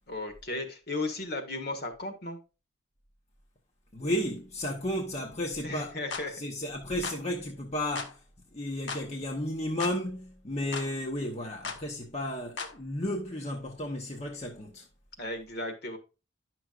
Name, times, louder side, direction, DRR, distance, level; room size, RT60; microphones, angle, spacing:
voice 1, 0.1-2.4 5.6-6.3 15.2-16.0, left 2 dB, 50° left, 1.4 m, -35 dB
voice 2, 3.9-6.0 6.3-8.2 8.5-14.9, left 1 dB, 35° left, 0.9 m, -33 dB
sound 1, 6.1-6.3 7.0-7.2 7.9-8.1 8.9-9.1 9.8-10.0 10.7-10.9 11.6-11.8 12.6-12.8, left 4 dB, 70° left, 1.0 m, -36 dB
10.0 x 6.1 x 2.4 m
head